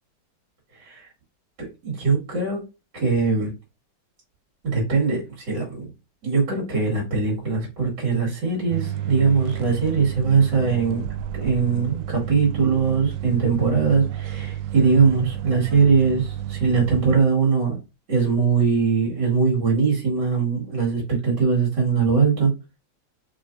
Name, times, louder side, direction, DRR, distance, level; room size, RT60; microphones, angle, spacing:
voice 1, 0.7-1.1 1.8-2.6 2.9-3.5 4.6-5.9 6.2-11.0 11.3-17.8 18.1-22.5, right 5 dB, 65° right, -3 dB, 2.6 m, -21 dB
sound 1, 8.7-17.2, right 11 dB, 80° right, 1.3 m, -31 dB
5.0 x 3.8 x 2.6 m, 0.26 s
omnidirectional pair, 2.1 m